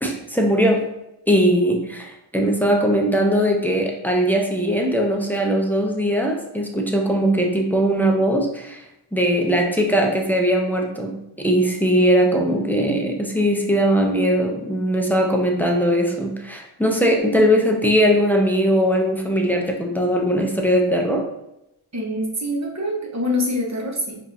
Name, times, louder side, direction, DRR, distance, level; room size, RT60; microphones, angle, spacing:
voice 1, 0.0-0.8 1.3-8.8 9.1-21.2, equal, 5° left, 0 dB, 0.5 m, -20 dB
voice 2, 21.9-24.2, left 1 dB, 35° right, -2 dB, 1.0 m, -25 dB
4.9 x 2.6 x 2.7 m, 0.87 s
wide cardioid pair, 90°, 49 cm